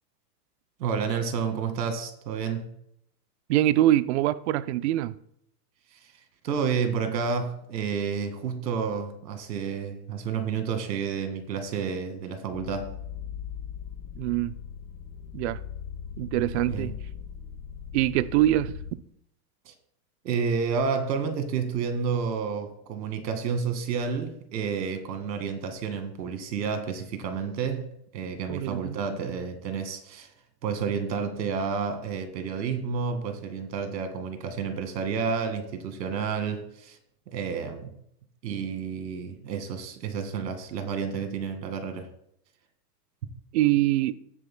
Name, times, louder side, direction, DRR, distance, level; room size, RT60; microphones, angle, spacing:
voice 1, 0.8-2.7 6.4-13.0 16.7-17.0 19.7-19.8 20.2-30.3 30.6-37.0 37.3-37.9 38.4-42.1, right 6 dB, 80° right, 2.0 m, -30 dB
voice 2, 3.5-5.2 14.2-14.5 15.3-15.6 16.2-16.9 17.9-19.0 28.5-29.0 43.5-44.2, right 14 dB, 45° right, 0.5 m, -24 dB
sound 1, 12.5-18.9, left 8 dB, 75° left, 1.4 m, -39 dB
17.5 x 9.8 x 2.2 m
supercardioid pair, 145°, 50 cm